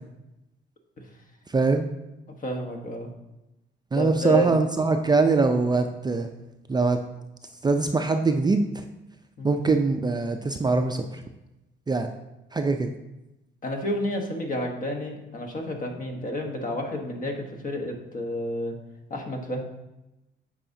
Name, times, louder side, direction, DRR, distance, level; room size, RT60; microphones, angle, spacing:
voice 1, 1.5-1.9 3.9-6.3 6.7-7.0 7.6-8.8 9.4-11.2 11.9-12.1 12.5-12.9, right 3 dB, 20° right, 5 dB, 0.4 m, -23 dB
voice 2, 2.4-3.1 3.9-4.6 9.4-9.6 13.6-18.8 19.1-19.6, equal, 45° left, 2 dB, 1.2 m, -30 dB
8.8 x 4.9 x 2.7 m, 0.96 s
cardioid pair, 90°, 20 cm